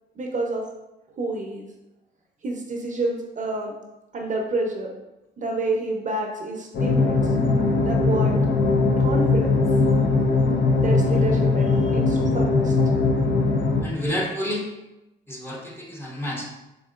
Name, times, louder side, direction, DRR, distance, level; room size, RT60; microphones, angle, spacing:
voice 1, 0.2-0.6 1.1-1.7 2.4-3.7 4.1-4.9 5.4-7.2 7.8-8.4 9.0-9.6 10.8-12.7, right 2 dB, 40° right, 1 dB, 0.7 m, -28 dB
sound 1, 6.7-13.8, left 3 dB, 70° left, 0.6 m, -20 dB
voice 2, 13.8-14.6 15.3-16.5, equal, 10° left, -2 dB, 0.9 m, -29 dB
3.7 x 3.6 x 2.4 m, 0.95 s
cardioid pair, 90°, 20 cm